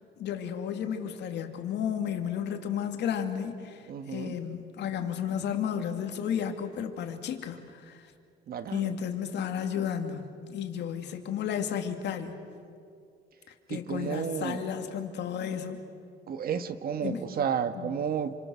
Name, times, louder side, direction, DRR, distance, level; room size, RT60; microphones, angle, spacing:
voice 1, 0.2-8.1 8.7-12.4 13.7-15.8 17.0-17.3 17.7-18.0, left 8 dB, 70° left, 5 dB, 2.6 m, -33 dB
voice 2, 3.9-4.3 8.5-8.9 13.7-14.6 16.3-18.3, right 7 dB, 55° right, 10 dB, 1.6 m, -32 dB
29.0 x 26.5 x 6.3 m, 2.4 s
cardioid pair, 120°, 18 cm